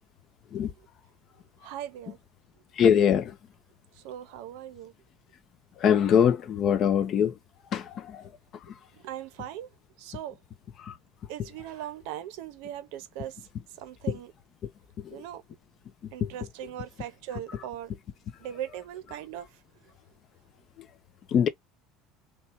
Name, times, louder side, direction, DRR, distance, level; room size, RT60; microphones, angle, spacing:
voice 1, 1.6-2.2 3.9-4.9 8.9-9.7 10.0-10.4 11.3-13.4 13.8-14.3 15.1-15.4 16.1-17.9 18.4-19.6, right 11 dB, 70° right, 0.7 m, -39 dB
voice 2, 2.7-3.4 5.8-7.4 7.7-8.8 10.8-11.0 11.4-11.5 14.1-14.2 15.0-15.2 16.0-16.3 17.5-17.6 20.8-20.9 21.3-21.5, left 8 dB, 35° left, 0.6 m, -24 dB
3.7 x 2.3 x 4.2 m
cardioid pair, 165°, 0 cm